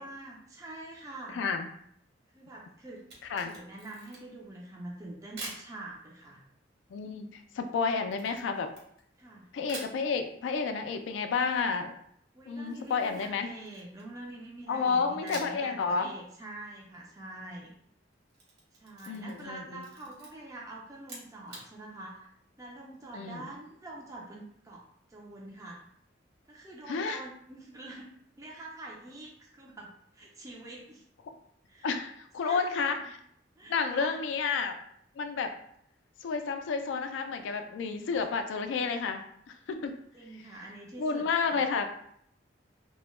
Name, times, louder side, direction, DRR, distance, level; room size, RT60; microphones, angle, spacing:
voice 1, 0.0-1.4 2.3-3.0 3.4-6.4 9.2-9.5 12.3-17.7 18.7-22.3 22.6-25.8 26.5-28.1 28.4-31.0 31.7-32.1 32.4-32.9 33.6-34.2 40.1-41.6, right 2 dB, 20° right, -2 dB, 0.3 m, -45 dB
voice 2, 1.3-1.7 3.3-3.5 6.9-7.3 7.6-8.7 9.5-11.9 12.5-13.5 14.7-16.1 19.1-19.8 23.1-23.5 26.9-27.2 31.8-33.2 33.7-34.8 35.2-35.5 36.2-40.0 41.0-41.9, left 5 dB, 80° left, 6 dB, 0.3 m, -31 dB
Camera, 3.0-4.4 5.4-5.7 8.1-9.3 9.7-10.0 12.7-14.2 15.3-15.7 16.0-16.1 18.1-19.5 19.8-20.3 21.0-21.7, right 2 dB, 60° right, 0.9 m, -46 dB
2.1 x 2.0 x 3.0 m, 0.69 s
head